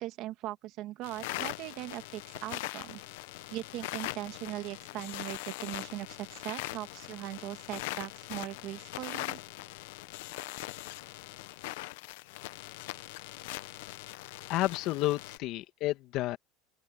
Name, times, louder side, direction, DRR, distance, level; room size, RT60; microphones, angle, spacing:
voice 1, 0.0-3.0 3.5-9.4, right 16 dB, 55° right, 1.7 m, -40 dB
sound 1, 1.0-15.4, left 20 dB, 80° left, 0.8 m, -41 dB
voice 2, 14.5-16.4, left 17 dB, 55° left, 2.0 m, -30 dB
open air
supercardioid pair, 130°, 0 cm